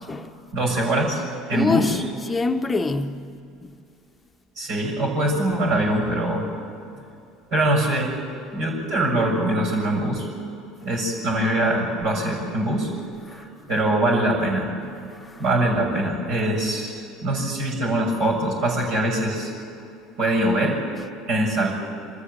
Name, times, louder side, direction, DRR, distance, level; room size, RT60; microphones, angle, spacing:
voice 1, 0.5-1.2 1.5-2.0 4.6-6.5 7.5-8.2 8.5-10.3 10.8-12.9 13.3-14.7 15.4-19.5 20.2-20.8 21.3-21.7, right 1 dB, 60° right, 6.7 m, -23 dB
voice 2, 1.5-3.3 3.6-3.8 13.3-13.4 15.2-15.4 16.0-16.1, left 3 dB, 20° left, 1.2 m, -26 dB
26.5 x 14.0 x 7.9 m
figure-of-eight pair, 65°, 0 cm